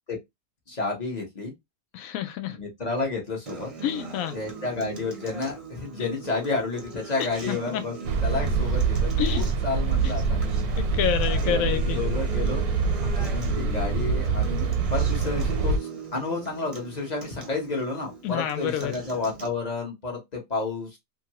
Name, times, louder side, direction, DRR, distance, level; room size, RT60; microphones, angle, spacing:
voice 1, 0.7-1.5 2.6-3.7 4.3-7.9 8.2-10.4 11.5-21.0, left 3 dB, 35° left, 0.8 m, -31 dB
voice 2, 1.9-2.6 3.8-4.3 6.0-6.1 7.2-7.8 9.2-9.4 10.0-10.1 10.8-12.0 18.2-18.9, left 10 dB, 70° left, 1.0 m, -28 dB
Acoustic guitar, 3.5-19.5, right 4 dB, 35° right, 0.6 m, -39 dB
sound 1, 8.0-15.8, right 4 dB, 80° right, 1.1 m, -25 dB
2.6 x 2.5 x 2.8 m
omnidirectional pair, 1.6 m